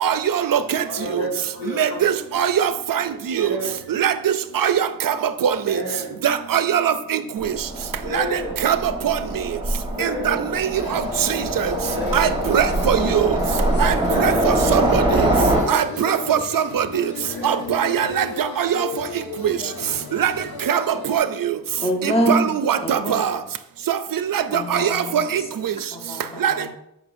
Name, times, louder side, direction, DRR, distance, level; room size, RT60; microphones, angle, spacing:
voice 1, 0.0-0.6 1.8-3.0 3.4-3.5 4.0-4.1 4.6-4.7 5.1-5.2 5.4-5.5 6.2-7.2 8.1-8.2 8.6-8.8 9.0-9.2 10.0-10.7 12.1-13.2 13.8-15.0 15.7-16.9 17.4-18.7 20.2-20.3 20.7-20.8 21.1-21.3 22.3-22.4 22.7-23.3 23.9-24.0 24.7-25.2 26.4-26.5, right 9 dB, 70° right, 0.5 m, -21 dB
voice 2, 0.8-2.4 3.3-3.9 5.6-6.2 8.0-8.6 9.9-10.4 11.9-12.4 14.0-14.6 15.9-16.2 17.2-18.1 19.6-19.7, equal, 75° left, 2.2 m, -31 dB
Train, 7.4-15.6, right 1 dB, 15° right, 1.3 m, -23 dB
sound 1, 10.7-21.2, left 5 dB, 90° left, 0.9 m, -34 dB
voice 3, 21.8-23.2 24.5-25.3 25.9-26.7, equal, 15° left, 1.1 m, -25 dB
8.1 x 6.0 x 2.6 m
wide cardioid pair, 100°, 35 cm